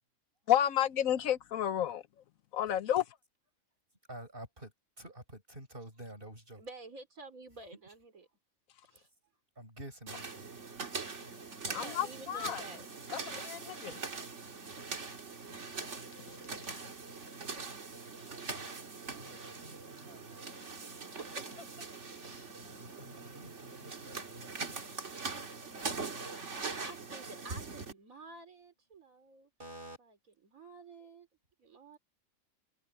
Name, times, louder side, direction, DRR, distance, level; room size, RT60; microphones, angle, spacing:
voice 1, 0.5-2.0 2.5-3.0 11.7-12.6 13.1-14.0, left 11 dB, 75° left, 1.2 m, -31 dB
voice 2, 4.1-6.6 9.6-10.5 19.1-20.5 22.5-24.7 29.6-30.0, right 1 dB, 40° right, 7.6 m, -50 dB
voice 3, 6.6-8.3 8.9-9.1 11.7-13.2 15.4-15.6 16.6-17.0 21.2-21.9 22.2-22.8 26.8-29.5 30.0-30.2 30.4-31.3 31.6-32.0, right 2 dB, 75° right, 4.1 m, -51 dB
sound 1, 10.1-27.9, right 4 dB, 60° right, 2.3 m, -42 dB
omnidirectional pair, 1.4 m